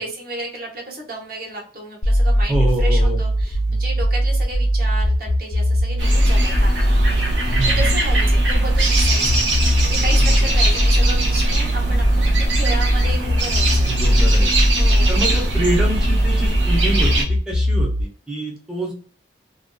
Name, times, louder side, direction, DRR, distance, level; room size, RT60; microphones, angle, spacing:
voice 1, 0.0-9.2 9.8-13.9 14.8-15.2, right 2 dB, 55° right, -1 dB, 0.9 m, -33 dB
sound 1, 2.0-18.0, equal, 50° left, 0.5 m, -19 dB
voice 2, 2.5-3.2 3.7-3.8 7.5-7.9 9.2-9.4 10.2-10.3 13.9-14.7 15.1-18.9, right 1 dB, 5° right, -2 dB, 0.5 m, -26 dB
sound 2, 6.0-17.2, right 1 dB, 85° right, 0.7 m, -22 dB
2.5 x 2.2 x 2.2 m, 0.43 s
head